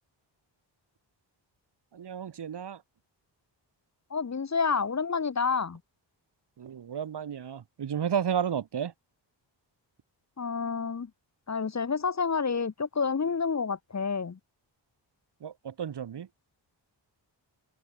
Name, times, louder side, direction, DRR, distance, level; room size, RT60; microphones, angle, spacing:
voice 1, 1.9-2.8 6.6-8.9 15.4-16.3, right 8 dB, 60° right, 1.3 m, -32 dB
voice 2, 4.1-5.8 10.4-11.1 11.5-14.4, left 5 dB, 35° left, 1.1 m, -29 dB
cardioid pair, 75°, 45 cm